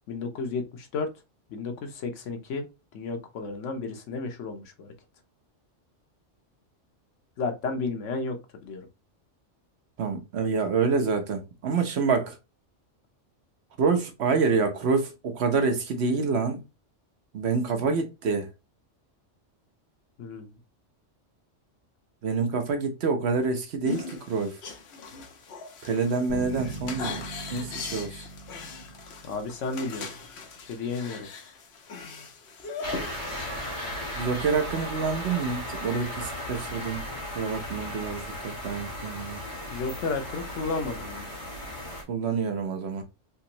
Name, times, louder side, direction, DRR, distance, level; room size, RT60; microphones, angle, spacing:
voice 1, 0.1-1.1 1.5-2.7 2.9-4.9 7.4-8.9 20.2-20.5 29.2-30.1 30.6-31.3 39.7-41.3, left 4 dB, 80° left, 1.1 m, -32 dB
voice 2, 10.0-12.4 13.8-16.6 17.3-18.5 22.2-24.6 25.8-28.2 34.1-37.0 37.3-39.4 42.1-43.0, right 4 dB, 65° right, 1.0 m, -27 dB
sound 1, 23.8-34.2, left 4 dB, 65° left, 1.0 m, -40 dB
sound 2, 26.3-30.0, right 3 dB, 45° right, 1.3 m, -41 dB
sound 3, 32.8-42.0, left 1 dB, 40° left, 1.4 m, -36 dB
3.5 x 2.9 x 2.8 m
omnidirectional pair, 1.3 m